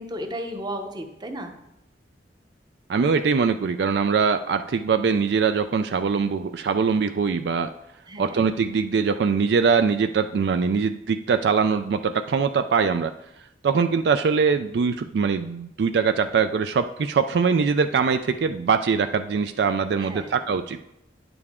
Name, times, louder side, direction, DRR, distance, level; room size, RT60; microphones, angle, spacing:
voice 1, 0.0-1.5 8.1-8.4 20.0-20.3, equal, 25° right, 5 dB, 0.8 m, -34 dB
voice 2, 2.9-7.7 8.2-13.1 13.6-20.8, right 5 dB, 65° right, 9 dB, 0.3 m, -22 dB
9.5 x 6.9 x 3.6 m, 0.85 s
head